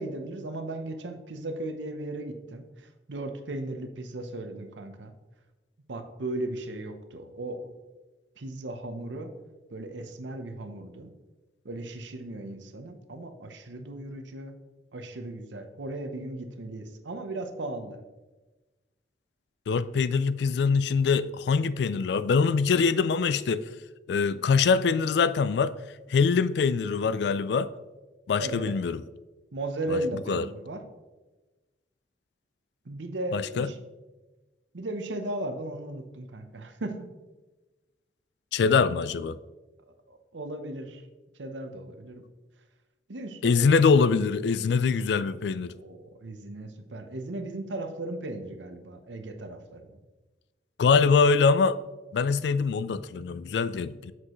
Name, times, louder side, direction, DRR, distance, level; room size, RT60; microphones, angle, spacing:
voice 1, 0.0-5.1 5.9-7.7 8.4-9.3 9.7-11.1 11.6-14.5 14.9-18.0 28.4-28.7 29.5-30.8 32.8-33.8 34.7-37.1 40.1-41.0 41.4-42.3 43.1-43.8 45.7-50.0, right 2 dB, 85° right, 7 dB, 0.8 m, -36 dB
voice 2, 19.7-23.7 24.1-25.7 26.1-27.7 28.3-29.0 29.9-30.0 30.3-30.4 33.3-33.7 38.5-39.4 43.4-45.7 50.8-51.8 52.1-54.1, left 5 dB, 70° left, 16 dB, 0.3 m, -23 dB
7.7 x 6.0 x 3.0 m, 1.2 s
head